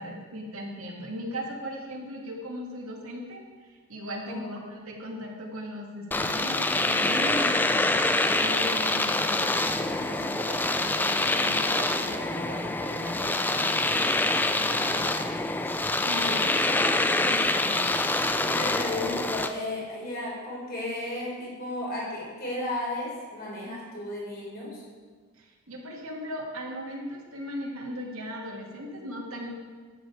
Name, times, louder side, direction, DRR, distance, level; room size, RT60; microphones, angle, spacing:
voice 1, 0.0-8.0 8.4-13.8 14.5-15.4 16.0-16.4 25.4-29.5, equal, 80° right, -2 dB, 2.2 m, -38 dB
Domestic sounds home sounds, 6.1-19.5, left 2 dB, 10° left, 0.3 m, -25 dB
voice 2, 15.1-15.7 16.1-18.0 18.4-24.8, left 1 dB, 45° left, -4 dB, 4.2 m, -35 dB
12.0 x 9.1 x 4.9 m, 1.5 s
head